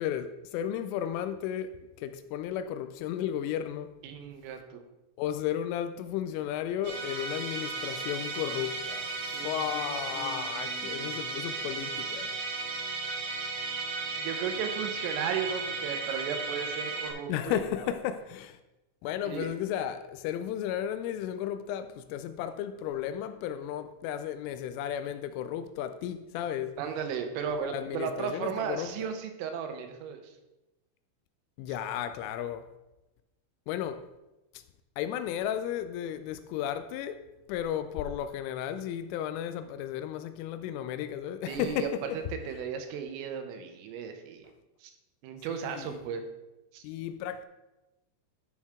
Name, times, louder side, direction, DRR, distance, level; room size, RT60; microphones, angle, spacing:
voice 1, 0.0-1.7 2.0-4.0 5.2-9.2 9.4-12.3 17.3-18.6 19.0-26.8 27.6-29.1 31.6-32.7 33.7-34.1 34.5-34.6 35.0-42.2 45.5-46.0 46.8-47.4, left 10 dB, 85° left, 3.0 m, -34 dB
voice 2, 4.0-4.8 9.3-11.2 14.2-17.6 19.3-19.5 26.8-30.2 41.5-44.5 44.8-44.9 45.2-46.2 46.7-46.8, right 7 dB, 80° right, 3.5 m, -35 dB
Musical instrument, 6.8-17.1, right 4 dB, 60° right, 2.9 m, -35 dB
12.0 x 6.3 x 3.6 m
omnidirectional pair, 5.8 m